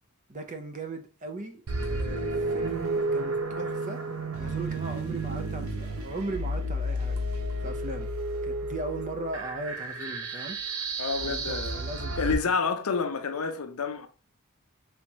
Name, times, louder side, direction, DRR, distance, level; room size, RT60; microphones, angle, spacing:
voice 1, 0.3-4.0 4.3-7.3 7.6-8.1 8.4-10.6 11.2-12.5, right 2 dB, 35° right, 0.7 m, -38 dB
sound 1, 1.7-12.3, right 1 dB, 75° right, 0.7 m, -32 dB
voice 2, 11.0-11.8 12.2-14.1, left 5 dB, 80° left, 0.6 m, -29 dB
4.5 x 3.5 x 2.9 m
head